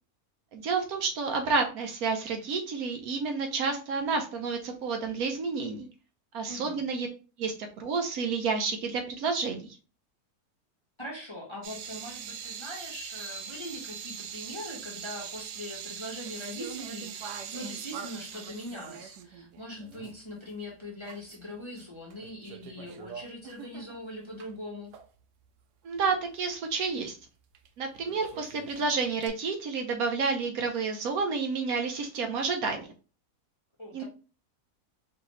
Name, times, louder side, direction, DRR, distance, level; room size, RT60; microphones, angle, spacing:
voice 1, 0.5-5.9 6.3-7.1 7.4-9.8 25.8-27.2 27.8-32.9 33.9-34.0, right 4 dB, 70° right, 4 dB, 1.2 m, -30 dB
voice 2, 6.5-6.8 11.0-24.9 33.8-34.0, left 1 dB, 20° left, -4 dB, 1.1 m, -41 dB
sound 1, 11.6-20.2 20.5-20.6 21.0-21.8 22.1-24.5 24.9-25.1 27.5-27.7 28.0-29.3, right 8 dB, 90° right, 1.2 m, -42 dB
4.9 x 2.7 x 3.1 m, 0.34 s
omnidirectional pair, 1.7 m